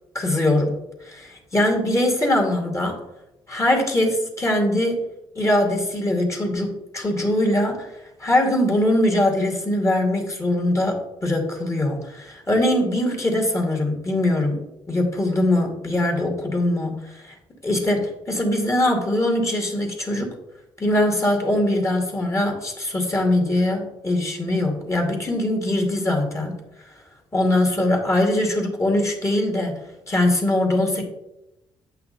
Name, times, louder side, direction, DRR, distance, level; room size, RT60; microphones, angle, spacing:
voice 1, 0.1-3.0 3.5-5.0 5.4-7.9 8.2-17.3 17.6-20.3 20.8-26.5 27.3-29.7 30.1-31.0, left 1 dB, 30° left, 2 dB, 2.3 m, -22 dB
8.3 x 5.7 x 4.1 m, 0.88 s
cardioid pair, 75°, 11 cm